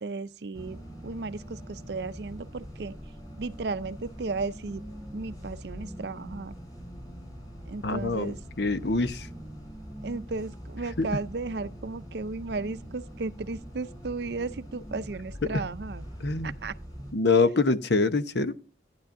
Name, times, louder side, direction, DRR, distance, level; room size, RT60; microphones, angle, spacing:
voice 1, 0.0-2.9 3.4-4.8 5.1-6.5 7.7-8.4 10.0-16.1 16.4-16.8, right 3 dB, 60° right, 0.5 m, -35 dB
sound 1, 0.5-17.1, equal, 20° left, 5.1 m, -43 dB
voice 2, 7.8-9.3 11.0-11.1 15.5-15.6 16.2-16.5 17.1-18.6, left 3 dB, 65° left, 0.9 m, -25 dB
15.0 x 10.5 x 2.6 m
head